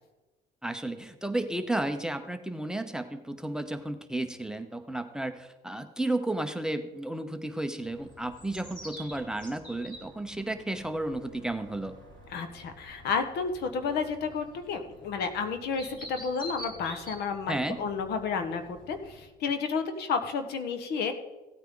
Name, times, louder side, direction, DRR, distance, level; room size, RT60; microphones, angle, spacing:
voice 1, 0.6-11.9 17.5-17.9, right 1 dB, 5° right, 7 dB, 0.8 m, -33 dB
sound 1, 7.8-19.2, equal, 25° left, 3.1 m, -48 dB
voice 2, 12.3-21.1, left 5 dB, 75° left, 8 dB, 1.4 m, -31 dB
16.0 x 9.1 x 3.9 m, 1.1 s
cardioid pair, 110°, 17 cm